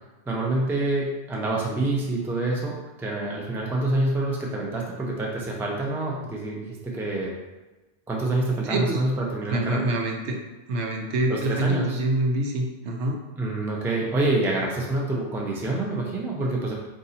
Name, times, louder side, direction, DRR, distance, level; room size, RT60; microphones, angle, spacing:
voice 1, 0.3-7.3 8.1-10.0 11.3-12.0 13.4-16.7, right 2 dB, 5° right, -2 dB, 0.4 m, -27 dB
voice 2, 8.6-9.0 9.5-10.4 10.7-13.2, right 1 dB, 75° right, 2 dB, 0.9 m, -25 dB
3.9 x 2.6 x 4.1 m, 1.1 s
omnidirectional pair, 1.2 m